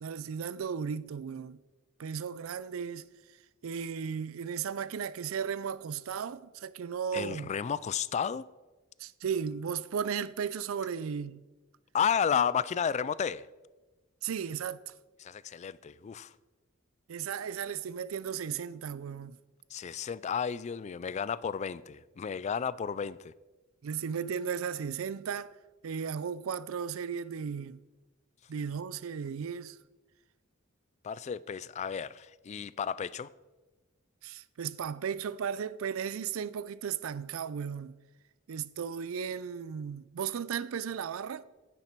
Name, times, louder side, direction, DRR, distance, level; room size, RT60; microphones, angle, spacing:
voice 1, 0.0-1.6 2.0-3.1 3.6-7.5 9.0-11.4 14.2-14.9 17.1-19.4 23.8-25.5 25.8-27.8 28.5-29.8 34.2-38.0 38.5-41.4, right 7 dB, 90° right, 0.4 m, -35 dB
voice 2, 7.1-8.5 11.9-13.5 15.2-16.3 19.7-23.3 31.0-33.3, left 7 dB, 35° left, 0.3 m, -32 dB
9.8 x 9.0 x 4.5 m
head